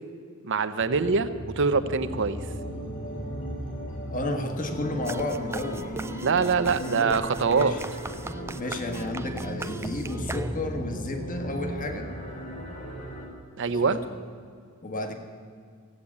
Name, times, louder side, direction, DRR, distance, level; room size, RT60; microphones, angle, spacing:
voice 1, 0.4-2.4 6.2-7.7 13.6-14.0, right 5 dB, 60° right, 11 dB, 0.7 m, -24 dB
sound 1, 0.8-13.3, equal, 60° left, 3.4 m, -36 dB
voice 2, 4.1-6.0 6.8-7.1 7.5-7.8 8.6-12.1 13.7-14.2 14.8-15.1, left 2 dB, 40° left, 5 dB, 1.4 m, -32 dB
sound 2, 5.1-10.9, right 2 dB, 10° right, 0.5 m, -38 dB
15.0 x 8.5 x 8.5 m, 2.2 s
head